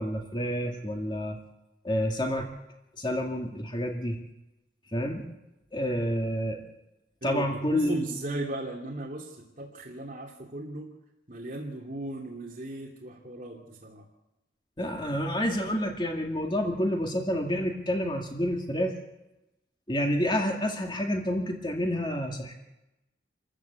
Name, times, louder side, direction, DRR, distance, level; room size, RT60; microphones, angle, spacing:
voice 1, 0.0-1.4 1.8-2.5 3.0-4.2 4.9-5.3 5.7-6.6 7.2-8.0 14.8-18.9 19.9-22.5, equal, 25° left, 2 dB, 2.2 m, -29 dB
voice 2, 7.2-10.9 11.3-14.0, right 1 dB, 45° right, -2 dB, 2.7 m, -36 dB
26.5 x 14.5 x 8.3 m, 0.95 s
head